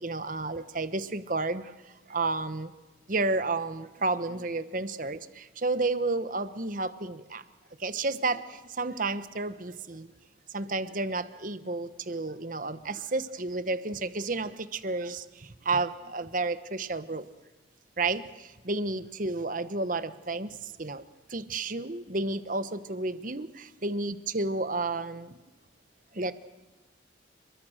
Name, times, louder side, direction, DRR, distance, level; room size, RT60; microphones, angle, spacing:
voice 1, 0.0-1.8 2.1-2.7 3.1-7.4 7.8-10.1 10.5-17.2 18.0-21.0 21.3-25.4 26.1-26.3, right 3 dB, 45° right, 12 dB, 1.1 m, -31 dB
29.5 x 22.5 x 6.5 m, 1.1 s
head